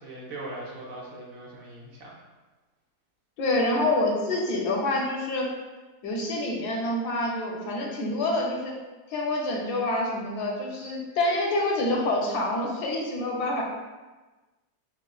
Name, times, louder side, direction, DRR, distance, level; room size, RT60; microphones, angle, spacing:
voice 1, 0.0-2.1, right 1 dB, 65° right, -4 dB, 1.1 m, -40 dB
voice 2, 3.4-5.5 6.0-8.7 9.1-13.6, left 2 dB, 80° left, -1 dB, 1.2 m, -27 dB
5.0 x 2.4 x 2.3 m, 1.2 s
omnidirectional pair, 1.7 m